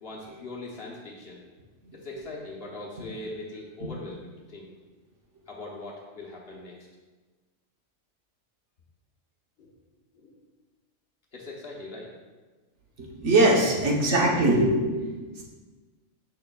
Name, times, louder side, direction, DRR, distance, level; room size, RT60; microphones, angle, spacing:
voice 1, 0.0-1.4 1.9-4.7 5.5-6.8 9.6-9.7 10.1-10.4 11.3-12.1, left 2 dB, 50° left, -3 dB, 1.1 m, -41 dB
voice 2, 13.0-15.4, right 2 dB, 60° right, -2 dB, 1.3 m, -22 dB
6.7 x 6.5 x 2.3 m, 1.3 s
omnidirectional pair, 1.4 m